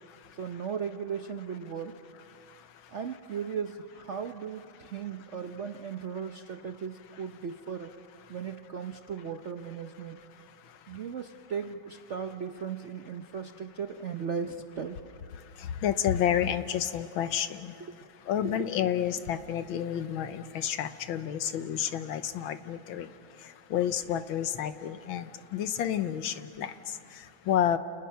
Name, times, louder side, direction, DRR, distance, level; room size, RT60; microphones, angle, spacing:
voice 1, 0.3-2.0 2.9-7.9 8.3-10.2 10.9-15.0 17.8-18.0 18.4-18.7, right 6 dB, 60° right, 6 dB, 0.7 m, -37 dB
voice 2, 15.6-17.7 18.3-23.1 23.7-27.8, left 10 dB, 75° left, 11 dB, 1.7 m, -30 dB
30.0 x 29.5 x 5.8 m, 2.4 s
omnidirectional pair, 2.2 m